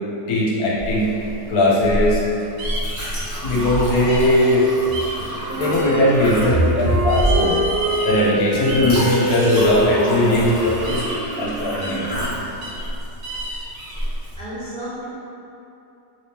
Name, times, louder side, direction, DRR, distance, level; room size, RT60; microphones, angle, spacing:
voice 1, 0.3-1.1 1.5-2.2 3.4-4.7 5.6-7.6 8.0-11.0 11.4-12.1, left 1 dB, 70° left, -6 dB, 1.2 m, -19 dB
Chink clink, 0.8-14.3, right 1 dB, 15° right, 0.7 m, -28 dB
sound 1, 2.6-3.1 4.1-4.5 4.9-5.2 5.7-6.5 7.1-8.3 8.6-9.9 10.8-11.2 11.8-12.1 12.6-12.9 13.2-14.0, right 2 dB, 85° right, 1.2 m, -32 dB
Wind instrument woodwind instrument, 5.5-12.2, right 1 dB, 50° left, 1.2 m, -26 dB
voice 2, 6.5-7.1 14.0-15.0, right 1 dB, 50° right, -13 dB, 0.5 m, -24 dB
3.4 x 2.9 x 2.9 m, 2.8 s
omnidirectional pair, 1.7 m